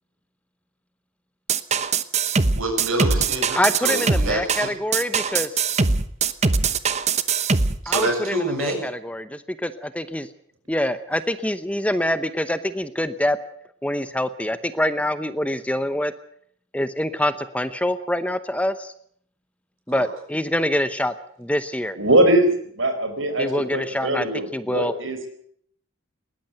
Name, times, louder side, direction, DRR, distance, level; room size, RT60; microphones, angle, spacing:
sound 1, 1.5-8.1, right 5 dB, 30° right, 1.0 m, -21 dB
voice 1, 2.5-4.7 7.8-8.8 19.9-20.1, right 1 dB, 85° right, 7.2 m, -27 dB
voice 2, 3.6-5.6 7.9-10.3 10.7-13.4 13.8-16.1 16.7-18.9 19.9-22.0 23.4-24.3 24.5-24.9, left 1 dB, 5° left, 0.8 m, -25 dB
voice 3, 22.0-22.5 22.8-25.3, right 1 dB, 65° right, 4.4 m, -21 dB
21.0 x 18.0 x 7.9 m
head